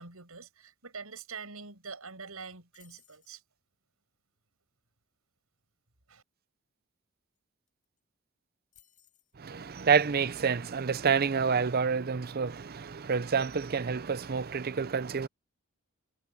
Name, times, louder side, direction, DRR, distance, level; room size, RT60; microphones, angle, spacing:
voice 1, 0.0-3.4 6.1-6.2, right 5 dB, 80° right, 6.1 m, -45 dB
sound 1, 2.7-3.4 7.4-7.5 7.7-8.0 8.7-9.4, left 10 dB, 35° left, 7.5 m, -63 dB
voice 2, 9.4-15.3, right 6 dB, 45° right, 0.6 m, -28 dB
head